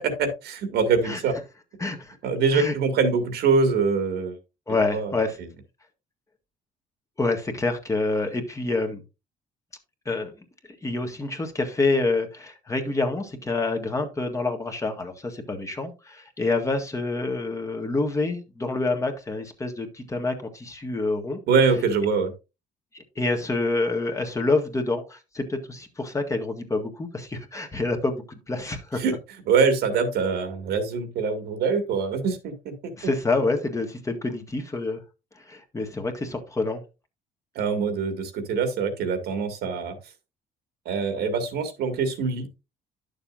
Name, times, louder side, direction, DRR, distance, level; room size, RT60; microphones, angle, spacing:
voice 1, 0.0-1.4 2.2-4.4 4.9-5.1 21.5-22.3 29.0-29.1 29.5-32.9 37.6-40.0 40.9-42.5, right 5 dB, 75° right, 7 dB, 2.2 m, -24 dB
voice 2, 1.8-2.2 2.5-2.7 4.7-5.4 7.2-9.0 10.0-10.3 10.8-21.4 22.9-29.0 33.0-35.0 35.5-36.8, left 3 dB, 20° left, 4 dB, 1.7 m, -27 dB
11.0 x 6.8 x 2.6 m, 0.27 s
cardioid pair, 110°, 17 cm